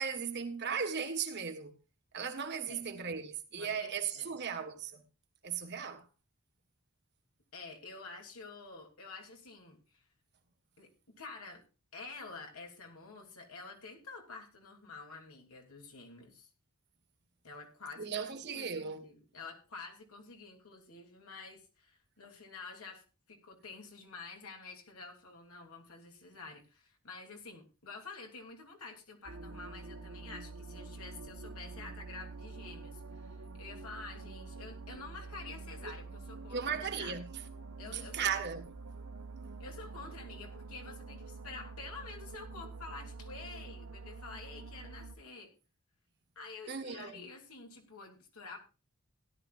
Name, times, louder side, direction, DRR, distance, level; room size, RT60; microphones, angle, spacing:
voice 1, 0.0-1.7 2.1-5.0 5.4-6.1 18.0-19.0 35.8-35.9 36.5-37.3 37.8-38.7 46.7-47.2, right 6 dB, 50° right, 1.5 m, -37 dB
voice 2, 3.6-4.4 7.5-10.0 10.8-11.6 11.9-16.5 17.4-37.1 37.8-38.6 39.6-45.5 46.3-48.6, left 4 dB, 85° left, 3.0 m, -49 dB
sound 1, 29.2-45.1, right 3 dB, 75° right, 1.2 m, -47 dB
17.0 x 11.5 x 2.5 m
head